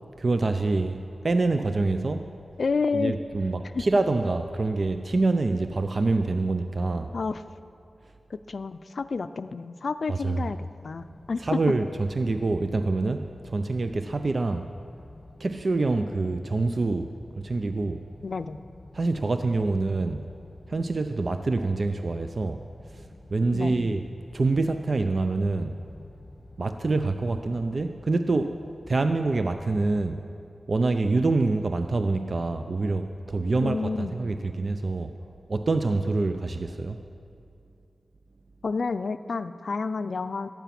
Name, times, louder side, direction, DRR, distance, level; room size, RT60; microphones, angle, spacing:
voice 1, 0.2-2.3 2.9-7.1 10.1-10.4 11.4-14.7 15.4-18.0 18.9-20.2 20.7-22.6 22.9-24.1 24.3-25.8 26.6-28.6 28.9-30.2 30.7-35.1 35.5-37.0, right 3 dB, 55° right, 8 dB, 0.5 m, -26 dB
voice 2, 2.6-3.1 3.7-3.8 7.1-7.4 8.3-11.6 18.2-18.6 23.5-23.7 33.6-34.1 38.6-40.5, left 4 dB, 70° left, 12 dB, 0.4 m, -29 dB
sound 1, 11.0-30.1, left 2 dB, 30° left, 1.7 m, -50 dB
14.0 x 10.5 x 5.9 m, 2.5 s
wide cardioid pair, 65°, 0 cm